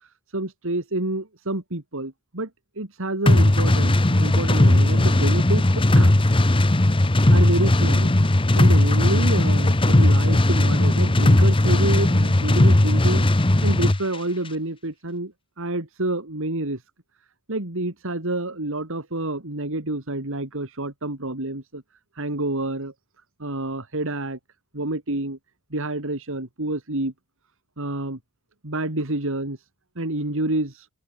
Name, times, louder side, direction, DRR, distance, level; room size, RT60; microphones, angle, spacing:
voice 1, 0.3-2.5 2.8-6.4 7.3-8.1 8.5-13.3 13.6-15.3 15.6-16.8 17.5-21.8 22.2-22.9 23.4-24.4 24.7-25.4 25.7-27.1 27.8-28.2 28.6-29.6 30.0-30.7, right 2 dB, 65° right, 3.0 m, -28 dB
sound 1, 3.3-14.0, left 1 dB, 25° left, 1.0 m, -17 dB
open air
head